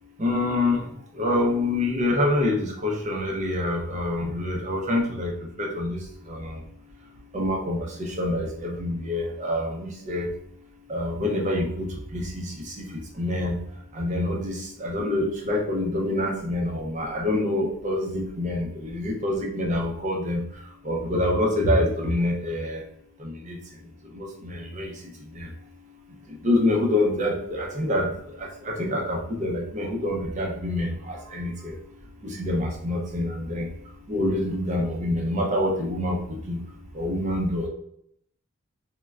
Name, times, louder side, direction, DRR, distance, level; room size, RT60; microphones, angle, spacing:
voice 1, 0.2-0.8 1.2-5.3 5.6-6.0 6.3-6.6 7.3-10.3 10.9-12.9 13.2-13.6 13.9-20.4 20.8-22.8 23.2-23.6 24.1-24.9 25.4-25.5 26.4-28.1 28.4-31.7 32.2-33.7 34.1-36.2 36.5-36.6 37.0-37.7, left 1 dB, 35° right, 0 dB, 0.5 m, -26 dB
3.1 x 2.1 x 2.3 m, 0.70 s
head